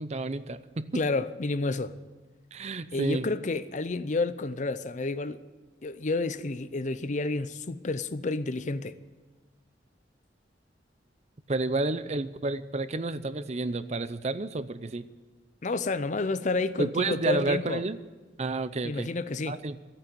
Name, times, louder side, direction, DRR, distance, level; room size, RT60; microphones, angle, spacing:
voice 1, 0.0-1.0 2.5-3.3 11.5-15.1 16.8-18.0 18.4-19.1 19.5-19.8, right 3 dB, 40° right, 0.6 m, -30 dB
voice 2, 0.9-2.0 2.9-5.4 5.8-8.9 15.6-17.8 18.8-19.6, left 3 dB, 45° left, 0.6 m, -30 dB
14.5 x 8.9 x 9.3 m
head